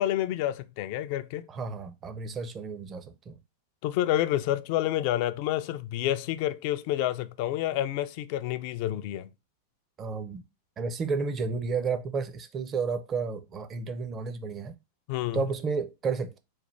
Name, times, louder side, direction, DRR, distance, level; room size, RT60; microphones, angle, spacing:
voice 1, 0.0-1.4 3.8-9.3 15.1-15.4, left 13 dB, 45° left, 0.3 m, -29 dB
voice 2, 1.5-3.4 10.0-10.4 10.8-14.8 15.3-16.4, right 5 dB, 25° right, 0.5 m, -32 dB
3.2 x 2.2 x 4.3 m
figure-of-eight pair, 90°, 0 cm